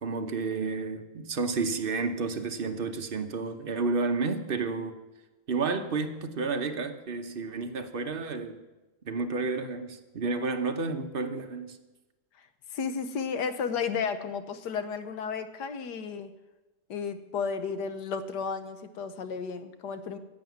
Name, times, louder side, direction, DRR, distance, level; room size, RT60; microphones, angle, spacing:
voice 1, 0.0-5.0 5.5-8.6 9.0-11.8, right 4 dB, 40° right, 7 dB, 0.9 m, -31 dB
voice 2, 12.7-16.3 16.9-20.2, left 6 dB, 85° left, 10 dB, 1.5 m, -33 dB
11.5 x 7.6 x 9.3 m, 1.1 s
omnidirectional pair, 1.7 m